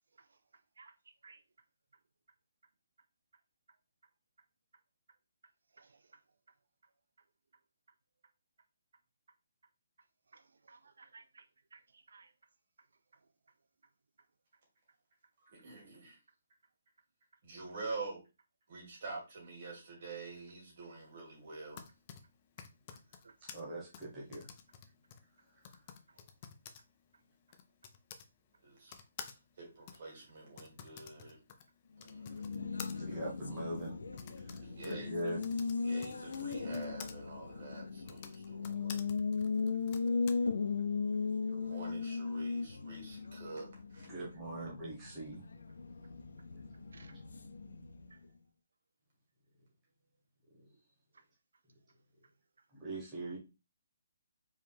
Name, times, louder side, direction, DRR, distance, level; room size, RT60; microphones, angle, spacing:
voice 1, 10.3-11.4 11.7-12.3 23.2-23.3 46.9-47.1 48.1-48.2, right 4 dB, 75° right, 0.4 m, -58 dB
voice 2, 15.4-16.2 17.4-18.2 18.7-21.8 28.6-28.9 29.3-31.4 32.0-32.4 34.6-35.4 35.8-39.1 41.5-44.1, right 3 dB, 35° right, 2.5 m, -47 dB
Typing, 21.5-28.3 28.9-37.1 37.9-40.3, left 7 dB, 20° left, 0.4 m, -52 dB
voice 3, 23.5-24.5 32.5-32.6 33.0-33.9 34.5-35.4 44.1-45.4 52.8-53.4, right 1 dB, 10° right, 1.3 m, -41 dB
Race car auto racing, 32.0-48.3, left 4 dB, 75° left, 0.6 m, -37 dB
4.8 x 3.2 x 3.4 m
hypercardioid pair, 180°, 0 cm